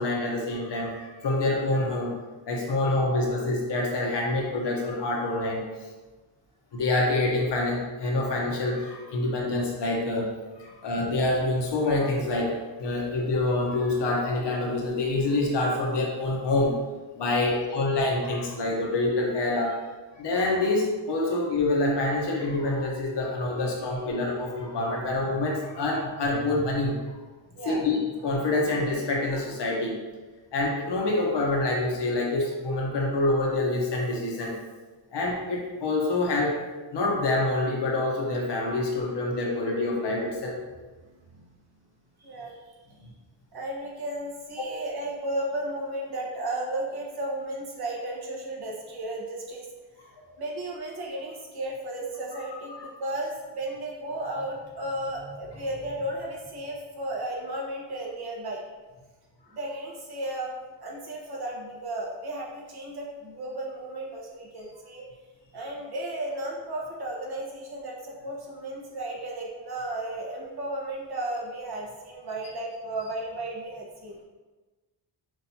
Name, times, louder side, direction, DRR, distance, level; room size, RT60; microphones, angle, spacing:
voice 1, 0.0-2.1 2.5-5.6 6.7-10.3 10.6-16.8 17.1-19.8 20.2-27.1 27.6-30.0 30.5-34.5 35.1-36.6 36.9-40.6 44.6-44.7 50.2-50.4 52.5-52.6, left 2 dB, 65° left, -2 dB, 1.0 m, -26 dB
voice 2, 42.2-42.7 43.5-49.7 50.0-50.1 50.4-58.6 59.5-65.0 65.5-74.2, right 1 dB, 55° right, -3 dB, 1.2 m, -34 dB
6.2 x 2.6 x 2.8 m, 1.3 s
wide cardioid pair, 125°, 45 cm